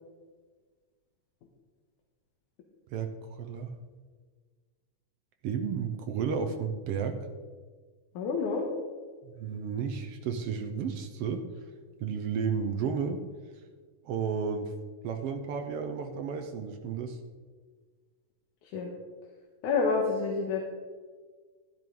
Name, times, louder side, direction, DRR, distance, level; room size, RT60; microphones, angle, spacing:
voice 1, 2.9-3.7 5.4-7.2 9.2-11.4 12.0-13.2 14.0-14.7 15.0-17.2, right 6 dB, 70° right, 6 dB, 1.5 m, -32 dB
voice 2, 8.1-8.7 18.6-18.9 19.6-20.7, left 4 dB, 85° left, 0 dB, 2.6 m, -28 dB
13.0 x 10.5 x 3.8 m, 1.5 s
omnidirectional pair, 3.4 m